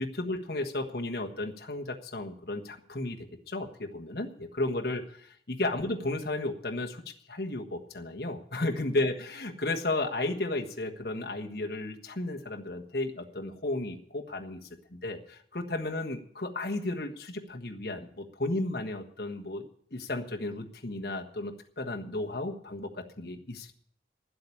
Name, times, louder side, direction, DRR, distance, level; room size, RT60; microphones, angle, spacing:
voice 1, 0.0-3.2 3.5-7.0 7.3-23.7, left 2 dB, 60° left, 2 dB, 1.4 m, -34 dB
11.5 x 7.9 x 9.8 m, 0.63 s
head